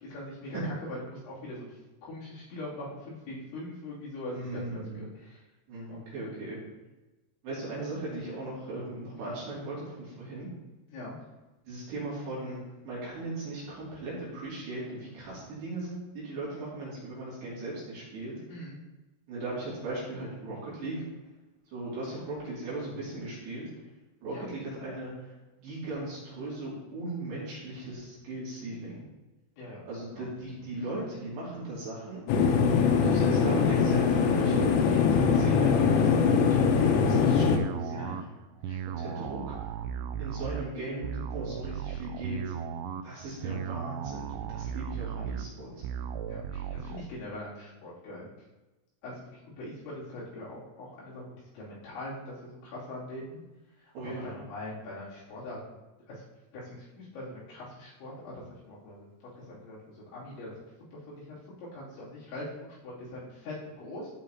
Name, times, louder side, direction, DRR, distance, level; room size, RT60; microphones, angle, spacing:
voice 1, 0.0-5.4 5.9-6.0 10.9-11.2 18.5-18.8 24.3-24.5 29.6-30.3 30.5-30.6 37.9-38.2 38.7-39.2 46.3-48.3 49.0-49.3 49.6-53.4 53.8-55.6 56.1-56.2 56.5-59.1 59.4-60.6 60.9-64.1, left 1 dB, 65° left, -10 dB, 5.2 m, -42 dB
voice 2, 4.3-5.0 5.7-6.6 7.4-10.5 11.7-18.3 19.3-21.0 21.7-23.6 24.2-25.3 25.6-29.0 29.9-32.2 33.0-38.2 38.9-39.7 40.2-42.5 43.0-45.8 53.9-54.4, right 2 dB, 60° right, -7 dB, 4.5 m, -38 dB
sound 1, 32.3-37.6, left 6 dB, 85° left, 3.4 m, -22 dB
sound 2, 37.4-47.0, right 8 dB, 85° right, 2.8 m, -36 dB
13.5 x 5.8 x 2.9 m, 1.1 s
omnidirectional pair, 5.9 m